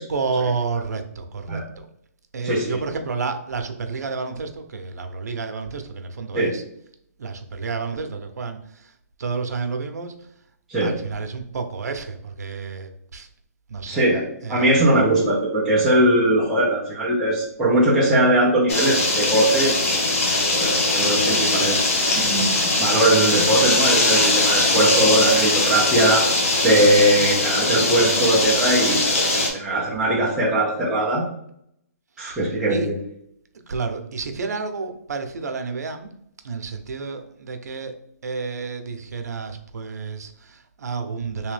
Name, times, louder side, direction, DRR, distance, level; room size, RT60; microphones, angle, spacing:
voice 1, 0.1-1.9 2.3-6.6 7.2-8.9 9.2-10.1 10.8-13.3 13.7-14.0 14.4-14.8 32.2-32.4 32.7-32.9 33.7-36.1 36.4-41.5, right 4 dB, 80° right, 6 dB, 0.7 m, -30 dB
voice 2, 2.4-2.8 6.3-6.5 10.7-11.0 13.9-14.2 14.5-20.1 20.5-21.9 22.2-26.3 26.6-31.3 32.2-32.9, right 1 dB, 5° right, -8 dB, 0.5 m, -20 dB
sound 1, 18.7-29.5, left 2 dB, 55° left, 1.1 m, -21 dB
3.4 x 3.1 x 3.3 m, 0.71 s
hypercardioid pair, 160°, 9 cm